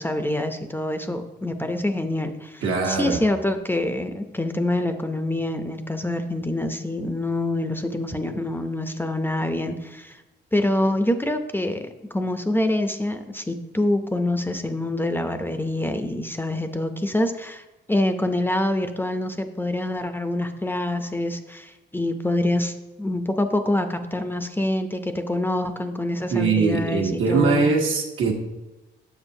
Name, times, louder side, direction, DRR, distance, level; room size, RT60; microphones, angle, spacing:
voice 1, 0.0-10.2 10.5-11.9 12.1-17.6 17.9-22.7 23.0-27.6, left 1 dB, 10° left, 7 dB, 0.5 m, -26 dB
voice 2, 2.6-3.2 26.3-28.3, right 4 dB, 80° right, 0 dB, 1.2 m, -21 dB
6.9 x 6.6 x 2.7 m, 1.1 s
cardioid pair, 90°, 20 cm